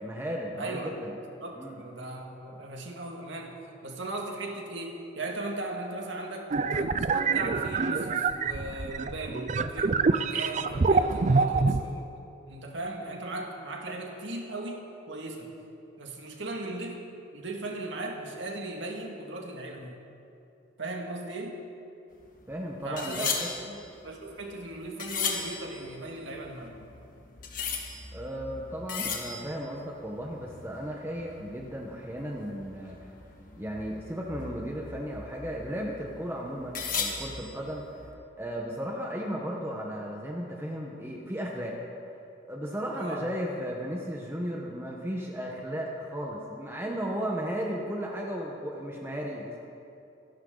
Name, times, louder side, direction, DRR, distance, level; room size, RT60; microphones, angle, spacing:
voice 1, 0.0-1.1 1.6-1.8 22.5-23.5 28.1-33.1 33.6-37.8 38.4-41.8 42.5-49.6, equal, 15° right, -2 dB, 1.2 m, -35 dB
voice 2, 0.6-0.9 1.4-3.5 3.8-12.1 12.5-15.5 16.0-17.0 17.3-20.0 20.8-21.6 22.8-23.3 23.6-23.8 24.0-26.8 42.9-43.3, right 2 dB, 75° right, 1 dB, 2.2 m, -38 dB
sound 1, 6.5-11.8, right 4 dB, 40° right, 0.5 m, -26 dB
sound 2, 22.1-38.1, left 5 dB, 45° left, 1.8 m, -38 dB
27.0 x 11.5 x 4.0 m, 2.7 s
head